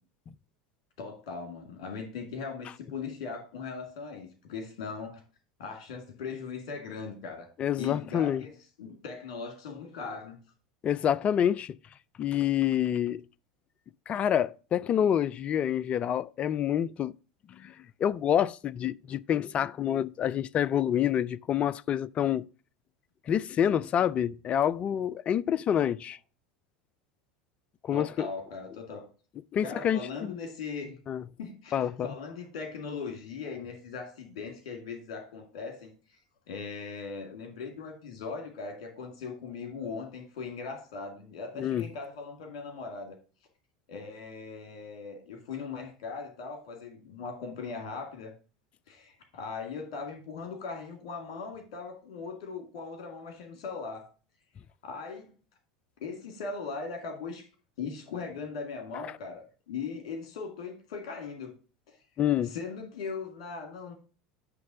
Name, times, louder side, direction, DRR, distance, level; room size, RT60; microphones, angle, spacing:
voice 1, 1.0-5.2 5.6-7.5 7.8-8.5 8.8-10.4 27.9-29.0 29.6-31.0 31.4-35.9 36.5-43.2 43.9-48.3 48.9-54.1 54.8-55.3 56.0-57.4 57.8-61.5 62.5-63.9, left 5 dB, 60° left, 2.2 m, -39 dB
voice 2, 7.6-8.4 10.8-11.8 12.2-13.2 14.1-17.1 17.5-17.7 18.0-22.4 23.3-26.2 27.8-28.3 29.5-30.4 31.1-31.2 31.7-32.1 41.6-41.9 62.2-62.6, left 9 dB, 30° left, 0.3 m, -27 dB
9.5 x 3.2 x 6.0 m
figure-of-eight pair, 75°, 4 cm